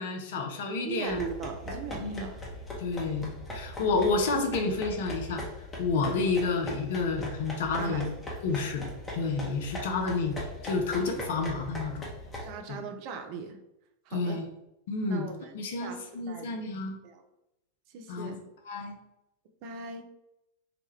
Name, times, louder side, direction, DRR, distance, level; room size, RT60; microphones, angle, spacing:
voice 1, 0.0-1.2 2.0-2.3 2.8-5.5 5.8-8.1 8.4-8.9 9.1-10.4 10.6-12.1 12.7-12.8 14.1-14.5 14.9-15.3 15.5-17.0 18.1-18.3 18.7-18.9, left 3 dB, 55° left, 3 dB, 0.5 m, -30 dB
voice 2, 0.8-2.4 6.4-6.5 7.7-8.0 8.6-8.7 10.0-10.1 12.4-13.6 14.1-14.4 15.1-15.5 15.8-16.0 16.3-16.6 17.0-17.2 17.9-18.4 19.6-20.1, right 5 dB, 45° right, 5 dB, 0.4 m, -39 dB
sound 1, 1.1-12.5, equal, 15° left, 0.8 m, -40 dB
2.8 x 2.2 x 3.3 m, 0.88 s
figure-of-eight pair, 90°, 0 cm